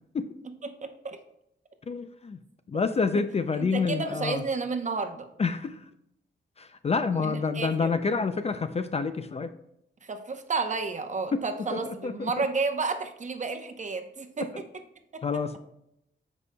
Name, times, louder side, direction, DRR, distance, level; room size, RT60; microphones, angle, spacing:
voice 1, 0.6-1.2 3.6-5.3 7.1-7.9 10.0-14.5 15.1-15.2, right 4 dB, 40° right, 6 dB, 0.8 m, -31 dB
voice 2, 1.9-2.4 2.7-4.4 5.4-5.8 6.6-9.5 11.3-11.4 11.7-12.3 15.2-15.6, left 4 dB, 35° left, 10 dB, 0.4 m, -28 dB
14.5 x 5.3 x 2.2 m, 0.79 s
wide cardioid pair, 125°, 20 cm